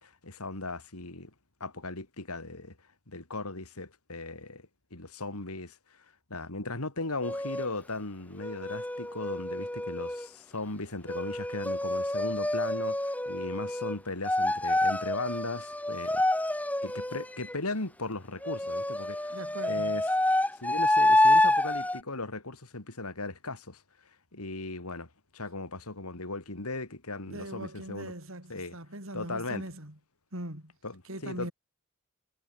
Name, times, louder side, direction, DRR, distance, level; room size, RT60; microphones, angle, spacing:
voice 1, 0.0-1.3 1.6-2.8 3.1-6.0 6.3-16.3 16.8-19.4 19.6-20.1 20.6-23.8 24.3-28.1 28.5-28.8 29.1-29.6 30.8-31.5, left 2 dB, 85° left, 3.4 m, -37 dB
sound 1, 7.2-7.7 8.4-10.3 11.1-14.0 14.2-17.5 18.4-22.0, left 1 dB, 5° left, 3.7 m, -28 dB
voice 2, 19.3-19.9 27.3-29.9 30.3-30.7 31.1-31.5, right 1 dB, 65° right, 5.9 m, -40 dB
head